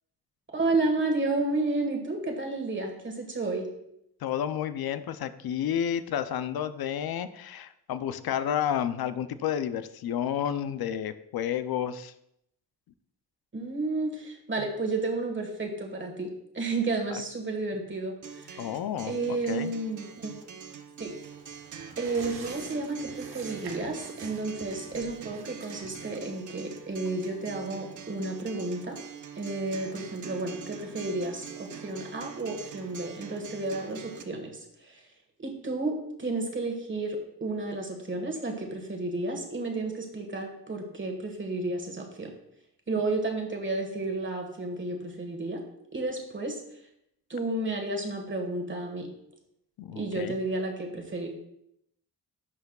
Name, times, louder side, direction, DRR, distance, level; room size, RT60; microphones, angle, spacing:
voice 1, 0.5-3.7 13.5-18.7 19.1-20.5 21.0-21.1 22.0-29.0 29.4-35.0 35.4-42.3 42.9-45.6 45.9-46.6 47.3-49.1 49.9-51.3, right 2 dB, 30° right, 3 dB, 1.5 m, -32 dB
voice 2, 4.2-12.1 14.6-14.7 17.1-17.2 18.6-19.7 49.8-50.4, left 9 dB, 70° left, 12 dB, 0.5 m, -31 dB
Acoustic guitar, 18.2-34.2, right 7 dB, 50° right, 0.7 m, -44 dB
sound 1, 21.2-28.2 28.5-28.6, right 5 dB, 80° right, 1.2 m, -48 dB
11.0 x 5.8 x 2.3 m, 0.77 s
cardioid pair, 105°, 38 cm